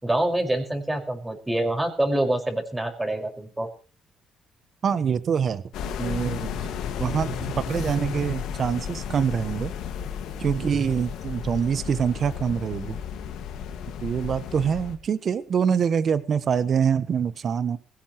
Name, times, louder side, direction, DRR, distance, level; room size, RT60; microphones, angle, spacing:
voice 1, 0.0-3.7, right 1 dB, 15° right, 5.5 m, -26 dB
voice 2, 4.8-5.6 6.0-6.6 7.0-9.7 10.4-13.0 14.0-17.8, right 7 dB, 55° right, 1.2 m, -25 dB
sound 1, 5.7-15.0, left 8 dB, 75° left, 2.0 m, -33 dB
20.5 x 17.0 x 3.2 m
supercardioid pair, 60°, 0 cm